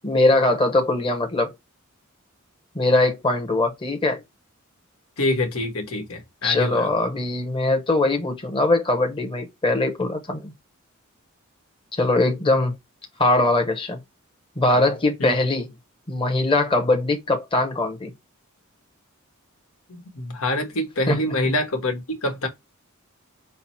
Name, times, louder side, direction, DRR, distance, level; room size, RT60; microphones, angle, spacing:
voice 1, 0.0-1.5 2.7-4.2 6.4-10.5 12.0-12.7 13.2-14.0 14.6-15.7 16.1-18.1 21.1-21.2, left 2 dB, 25° left, 0.9 m, -21 dB
voice 2, 5.2-6.9 15.2-15.3 19.9-22.5, left 1 dB, 85° left, 1.2 m, -25 dB
5.7 x 2.0 x 4.3 m
head